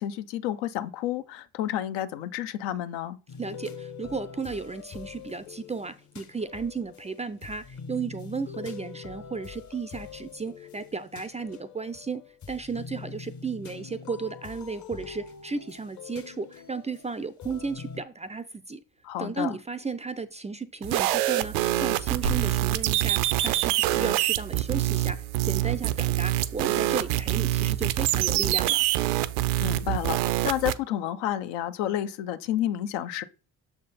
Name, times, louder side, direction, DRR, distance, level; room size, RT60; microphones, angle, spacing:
voice 1, 0.0-3.2 19.0-19.6 29.6-33.2, left 12 dB, 65° left, 0.7 m, -30 dB
sound 1, 3.3-18.0, left 6 dB, 35° left, 0.9 m, -44 dB
voice 2, 3.4-12.2 12.5-18.8 19.2-28.9, right 4 dB, 15° right, 0.4 m, -34 dB
sound 2, 20.8-30.7, right 15 dB, 70° right, 0.6 m, -25 dB
sound 3, 22.2-23.0, right 3 dB, 90° right, 1.1 m, -34 dB
6.7 x 3.7 x 4.1 m
hypercardioid pair, 60°, 49 cm